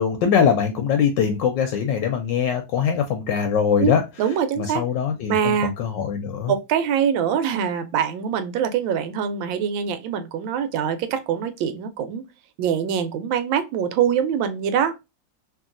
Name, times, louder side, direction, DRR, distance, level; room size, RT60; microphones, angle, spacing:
voice 1, 0.0-4.0 4.6-6.5, left 7 dB, 75° left, 1.2 m, -22 dB
voice 2, 3.8-4.8 5.3-5.7 6.5-12.2 12.6-14.9, right 8 dB, 85° right, 1.4 m, -24 dB
2.9 x 2.7 x 2.4 m
omnidirectional pair, 2.1 m